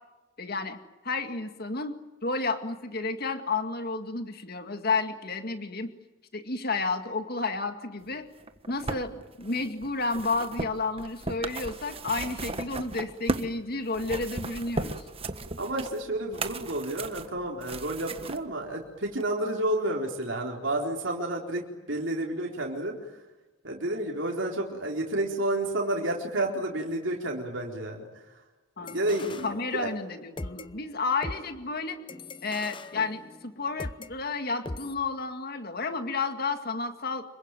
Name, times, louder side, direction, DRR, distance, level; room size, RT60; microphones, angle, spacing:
voice 1, 0.4-0.8 1.0-1.9 2.2-5.9 6.3-8.3 8.7-15.1 28.8-32.0 32.4-37.2, left 3 dB, 50° left, 7 dB, 2.1 m, -31 dB
sound 1, 8.4-13.6 13.9-18.4 19.2-19.3, right 2 dB, 30° right, 1.4 m, -36 dB
voice 2, 15.6-21.6 21.9-23.2 23.6-28.4 28.8-29.9, right 1 dB, 65° right, -1 dB, 4.2 m, -30 dB
sound 2, 28.9-30.1 30.4-34.1 34.7-34.9, left 2 dB, 25° left, 0.8 m, -41 dB
27.0 x 23.0 x 9.1 m, 1.1 s
head